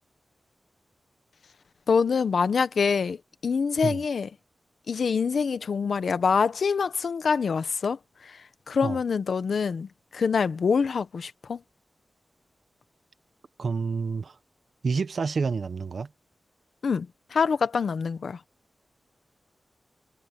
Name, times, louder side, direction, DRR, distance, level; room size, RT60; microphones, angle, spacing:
voice 1, 1.9-3.2 3.4-4.3 4.9-8.0 8.7-11.6 16.8-17.1 17.3-18.4, left 5 dB, 75° left, 1.1 m, -25 dB
voice 2, 13.6-14.4 14.8-16.1, right 5 dB, 65° right, 1.4 m, -28 dB
wide cardioid pair, 100°, 0 cm